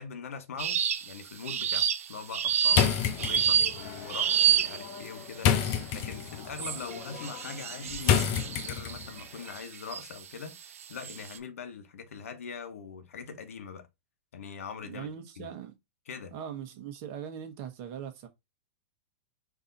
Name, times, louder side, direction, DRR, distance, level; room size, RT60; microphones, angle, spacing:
voice 1, 0.0-2.9 3.2-13.9 14.3-15.1 15.4-15.5 16.1-16.3, left 6 dB, 85° left, 1.0 m, -42 dB
sound 1, 0.6-1.1 1.5-5.0 5.6-6.0 6.6-10.1 10.6-11.4, right 9 dB, 85° right, 0.6 m, -29 dB
sound 2, 2.7-9.2, left 9 dB, 40° left, 0.7 m, -30 dB
voice 2, 14.8-15.7 16.3-18.3, right 8 dB, 40° right, 1.2 m, -40 dB
4.6 x 2.8 x 3.9 m
hypercardioid pair, 140°, 7 cm